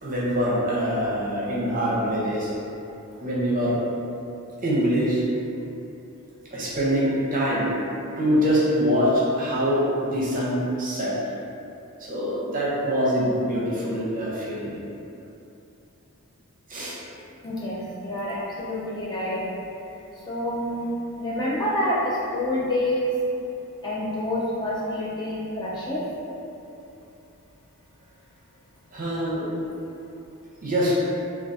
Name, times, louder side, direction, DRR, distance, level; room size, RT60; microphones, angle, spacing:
voice 1, 0.0-2.5 3.2-3.8 4.6-5.2 6.5-7.7 8.2-11.1 12.0-14.7 16.7-17.0 28.9-29.5 30.6-30.9, equal, 40° right, -6 dB, 0.7 m, -24 dB
voice 2, 17.4-19.4 20.3-20.8 21.2-23.1 23.8-26.0, left 1 dB, 20° left, -7 dB, 0.4 m, -27 dB
3.6 x 2.3 x 2.6 m, 2.8 s
head